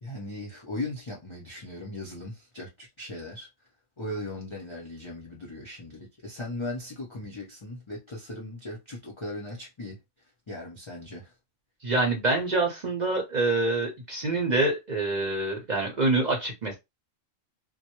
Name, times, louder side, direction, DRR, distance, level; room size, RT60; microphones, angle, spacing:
voice 1, 0.0-3.5 4.0-10.0 10.5-11.3, left 2 dB, 45° left, 0.3 m, -38 dB
voice 2, 11.8-16.8, right 2 dB, 45° right, 0.6 m, -26 dB
2.1 x 2.0 x 2.8 m
omnidirectional pair, 1.3 m